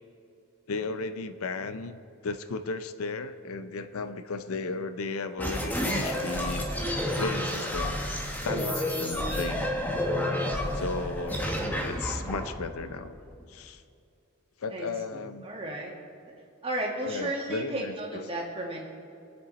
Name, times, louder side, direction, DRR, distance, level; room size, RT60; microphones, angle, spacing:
voice 1, 0.7-2.0 2.2-6.7 7.2-8.0 8.4-9.7 10.7-11.5 11.8-13.1 13.5-13.8 14.6-15.5 17.0-17.9, left 3 dB, 75° left, 10 dB, 0.5 m, -35 dB
sound 1, 5.4-13.6, left 1 dB, 10° left, 0.9 m, -30 dB
voice 2, 15.1-15.9 16.6-18.8, right 1 dB, 25° right, -2 dB, 1.9 m, -33 dB
22.0 x 7.7 x 4.1 m, 2.5 s
head